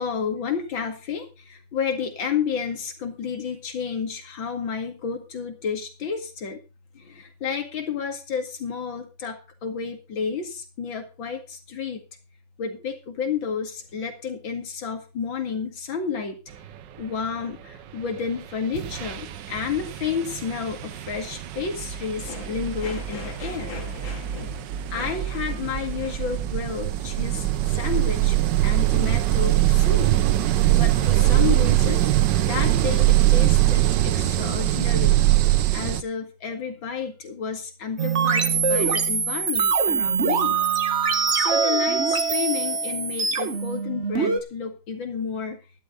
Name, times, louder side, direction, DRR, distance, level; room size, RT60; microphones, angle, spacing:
voice 1, 0.0-6.6 6.9-12.0 12.6-16.4 17.0-24.6 24.9-30.1 30.7-32.0 32.5-35.3 35.7-40.6 41.3-45.6, left 6 dB, 65° left, 5 dB, 2.9 m, -31 dB
sound 1, 18.2-18.4 18.7-36.0, right 15 dB, 65° right, 1.3 m, -22 dB
sound 2, 38.0-44.4, right 5 dB, 40° right, 1.3 m, -23 dB
12.0 x 11.5 x 3.8 m, 0.31 s
omnidirectional pair, 2.3 m